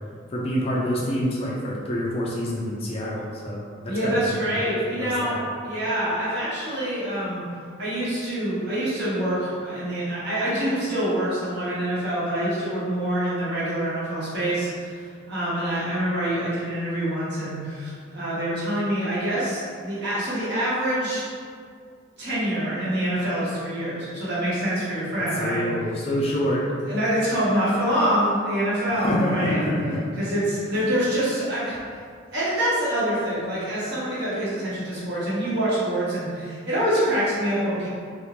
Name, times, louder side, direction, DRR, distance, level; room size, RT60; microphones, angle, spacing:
voice 1, 0.3-4.4 4.6-4.7 5.0-5.4 25.4-26.6 29.0-30.1 30.7-30.8, equal, 30° left, -5 dB, 0.3 m, -27 dB
voice 2, 3.9-5.3 5.6-7.4 7.8-21.3 22.2-25.7 26.9-29.7 30.2-31.8 32.3-37.9, right 1 dB, 55° right, -9 dB, 0.9 m, -25 dB
2.4 x 2.1 x 2.9 m, 2.1 s
head